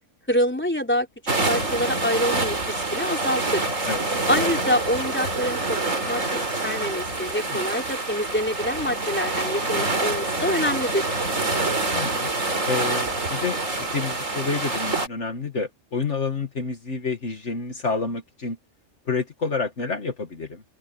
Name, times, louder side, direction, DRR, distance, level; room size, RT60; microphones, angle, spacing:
voice 1, 0.3-1.1 1.4-3.7 4.3-5.8 6.1-11.1, equal, 10° left, 4.2 m, -26 dB
sound 1, 1.3-15.1, right 2 dB, 80° right, 4.2 m, -26 dB
voice 2, 11.9-12.3 12.6-18.6 19.1-20.6, left 4 dB, 60° left, 2.1 m, -29 dB
omnidirectional pair, 1.4 m